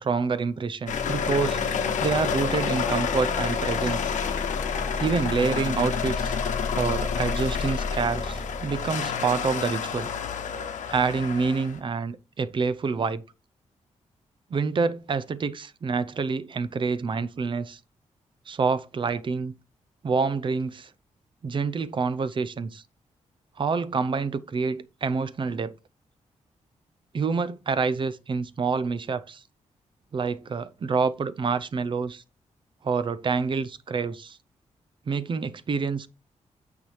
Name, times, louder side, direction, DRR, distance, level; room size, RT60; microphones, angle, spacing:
voice 1, 0.0-1.6 2.0-4.1 5.0-6.4 6.7-10.1 10.9-13.2 14.5-17.8 18.5-19.5 20.0-20.9 21.4-22.8 23.6-25.8 27.1-29.4 30.1-32.2 32.8-34.4 35.1-36.1, right 5 dB, 40° right, 0.6 m, -27 dB
sound 1, 0.9-11.8, left 6 dB, 85° left, 0.9 m, -28 dB
8.9 x 5.8 x 3.2 m
wide cardioid pair, 115°, 12 cm